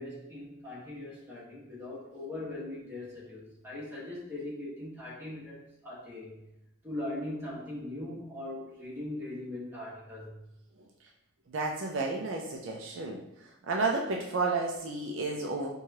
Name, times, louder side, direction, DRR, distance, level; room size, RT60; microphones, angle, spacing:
voice 1, 0.0-6.4 6.8-10.4, left 1 dB, 10° right, -8 dB, 1.2 m, -40 dB
voice 2, 11.5-13.2 13.7-15.7, right 3 dB, 60° right, 0 dB, 0.4 m, -31 dB
4.7 x 2.3 x 2.7 m, 0.88 s
head